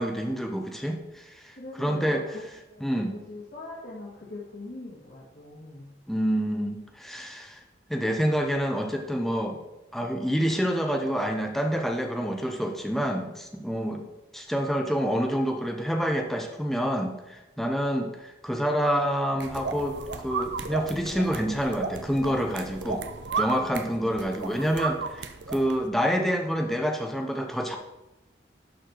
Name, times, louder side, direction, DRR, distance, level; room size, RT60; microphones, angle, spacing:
voice 1, 0.0-2.2 2.8-3.1 6.1-7.6 7.9-9.6 9.9-14.0 14.3-20.0 20.2-23.1 23.4-27.8, equal, ahead, 3 dB, 0.7 m, -27 dB
voice 2, 1.5-2.4 2.7-5.9, left 2 dB, 65° left, -7 dB, 1.8 m, -41 dB
sound 1, 19.4-25.9, right 4 dB, 85° right, 0.6 m, -34 dB
11.5 x 4.3 x 4.6 m, 0.99 s
head